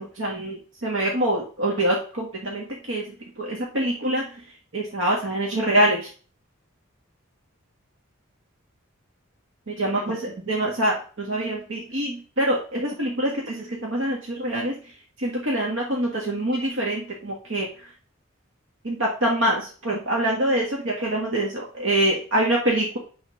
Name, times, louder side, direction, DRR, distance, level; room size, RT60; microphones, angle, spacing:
voice 1, 0.0-3.0 3.4-6.0 9.7-14.9 15.2-17.9 18.8-23.0, right 1 dB, 70° right, -2 dB, 1.5 m, -25 dB
9.4 x 3.5 x 5.7 m, 0.40 s
head